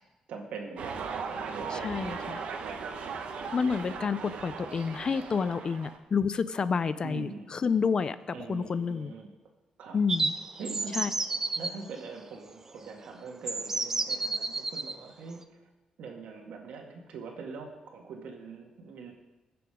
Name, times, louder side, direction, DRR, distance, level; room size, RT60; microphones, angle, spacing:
voice 1, 0.3-2.1 2.6-2.9 3.3-3.5 7.0-7.5 8.3-9.3 9.8-10.0 10.6-11.0 11.6-15.7 16.0-19.1, right 4 dB, 90° right, 2 dB, 2.1 m, -43 dB
sound 1, 0.8-6.0, right 5 dB, 75° right, 1.3 m, -38 dB
voice 2, 1.7-2.4 3.5-9.1 9.9-10.3 10.9-11.1, left 5 dB, 40° left, 14 dB, 0.5 m, -29 dB
sound 2, 10.1-11.7 12.8-12.9 13.5-15.0, right 3 dB, 20° right, 0.6 m, -31 dB
20.5 x 6.9 x 5.1 m, 1.1 s
wide cardioid pair, 135°, 2 cm